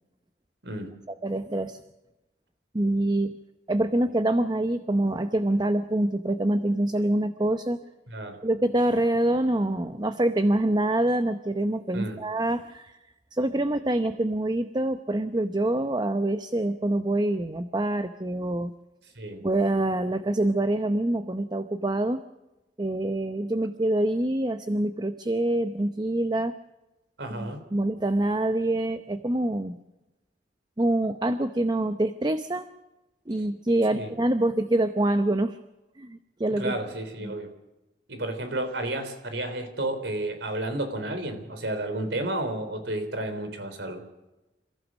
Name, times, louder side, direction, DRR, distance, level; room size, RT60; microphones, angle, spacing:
voice 1, 1.2-1.8 2.7-3.4 3.7-7.8 8.4-13.0 13.3-18.7 19.4-22.2 22.8-26.5 27.3-29.8 30.8-32.7 33.3-35.6 36.0-36.7 37.2-37.3, right 1 dB, 25° right, 10 dB, 0.7 m, -25 dB
voice 2, 8.1-8.4 11.9-12.2 19.2-19.4 27.2-27.6 33.9-34.1 36.6-37.5 38.1-44.0, right 1 dB, 75° right, 8 dB, 3.7 m, -32 dB
28.0 x 15.0 x 6.3 m, 1.0 s
head